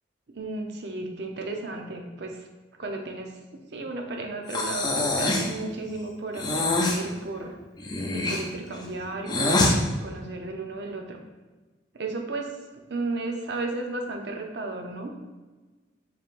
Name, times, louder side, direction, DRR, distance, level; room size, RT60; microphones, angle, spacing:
voice 1, 0.3-2.5 2.8-3.4 3.7-7.5 8.1-11.2 11.9-12.6 12.9-15.1, right 2 dB, 65° right, 3 dB, 0.6 m, -34 dB
Breathing, 4.5-5.6 6.3-7.0 7.8-9.8, left 2 dB, 25° left, 0.4 m, -25 dB
4.4 x 3.3 x 2.5 m, 1.3 s
head